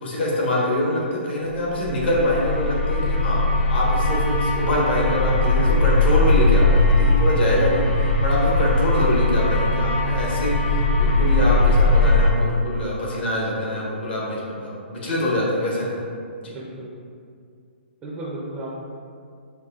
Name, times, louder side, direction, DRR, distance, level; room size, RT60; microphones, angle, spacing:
voice 1, 0.0-16.0 16.4-16.5, left 1 dB, 60° left, -4 dB, 1.1 m, -24 dB
sound 1, 1.6-12.3, left 2 dB, 85° left, 0.7 m, -19 dB
voice 2, 16.5-16.9 18.0-18.8, right 1 dB, 15° right, -7 dB, 0.5 m, -34 dB
5.4 x 2.2 x 2.3 m, 2.2 s
hypercardioid pair, 155°, 7 cm